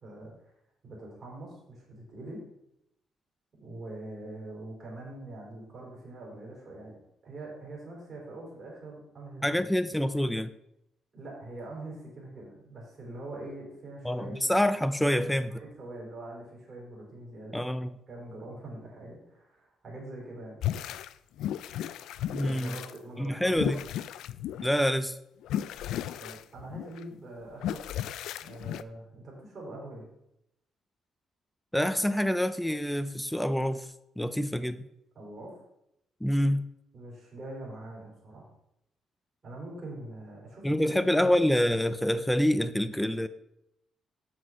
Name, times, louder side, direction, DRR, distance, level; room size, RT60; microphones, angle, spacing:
voice 1, 0.0-0.5 0.8-2.4 3.5-7.0 7.2-9.7 11.1-14.4 15.5-17.7 18.1-20.6 22.4-23.8 26.2-27.9 28.4-30.1 35.1-35.6 36.9-38.5 39.4-41.3, right 2 dB, 40° right, -3 dB, 4.0 m, -43 dB
voice 2, 9.4-10.5 14.0-15.6 17.5-17.9 22.3-22.7 23.2-23.8 24.6-25.2 31.7-33.9 34.2-34.9 36.2-36.7 40.6-43.3, equal, 5° left, 12 dB, 0.5 m, -26 dB
sound 1, 20.6-21.1 21.4-23.0 23.5-24.9 25.4-27.0 27.6-28.8, left 11 dB, 85° left, 0.3 m, -34 dB
7.6 x 6.0 x 5.6 m, 0.82 s
cardioid pair, 90°, 0 cm